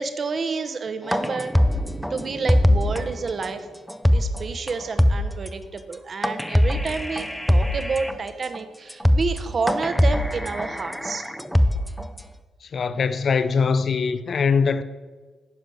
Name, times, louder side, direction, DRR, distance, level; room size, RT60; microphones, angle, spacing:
voice 1, 0.0-1.6 2.1-3.7 4.1-11.2, right 4 dB, 50° right, 0.9 m, -29 dB
sound 1, 1.1-3.0 3.4-3.5 3.9-4.4 4.7-4.8 5.0-5.5 6.2-8.1 8.5-8.6 8.9-9.4 9.7-12.2, equal, 5° left, 0.6 m, -21 dB
voice 2, 12.7-14.8, left 5 dB, 55° left, 0.6 m, -22 dB
9.9 x 5.0 x 6.4 m
supercardioid pair, 60°, 0 cm